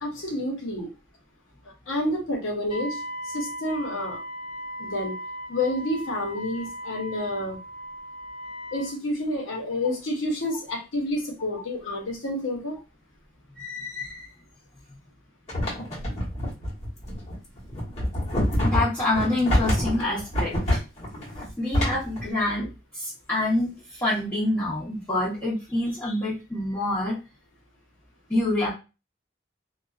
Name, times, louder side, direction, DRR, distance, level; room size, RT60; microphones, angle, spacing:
voice 1, 0.0-0.9 1.9-4.2 4.8-5.2 5.5-7.6 8.7-12.8 26.0-26.2, left 1 dB, 85° left, 1 dB, 0.9 m, -29 dB
Wind instrument woodwind instrument, 2.7-8.9, equal, 20° right, 0.5 m, -37 dB
voice 2, 13.6-14.3 18.6-20.8 21.6-22.7 22.9-27.2 28.3-28.7, left 1 dB, 10° left, -12 dB, 0.9 m, -27 dB
sound 1, 15.5-22.2, left 1 dB, 35° left, 1.2 m, -26 dB
2.5 x 2.3 x 2.3 m, 0.29 s
head